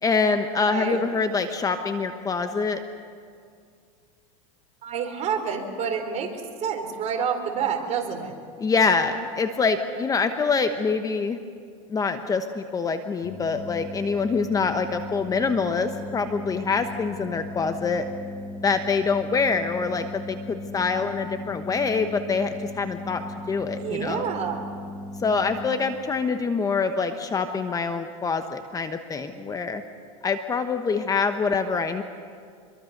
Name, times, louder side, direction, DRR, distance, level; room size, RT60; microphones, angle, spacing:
voice 1, 0.0-2.8 8.6-11.4 11.9-18.1 18.6-24.3 25.2-29.8 30.2-32.0, left 4 dB, 20° left, 8 dB, 1.1 m, -25 dB
voice 2, 0.7-1.0 4.8-6.3 6.6-8.3 23.7-24.8, right 7 dB, 40° right, 4 dB, 4.0 m, -28 dB
sound 1, 13.2-25.7, left 1 dB, 40° left, 7.8 m, -37 dB
26.0 x 22.5 x 6.7 m, 2.2 s
supercardioid pair, 125°, 18 cm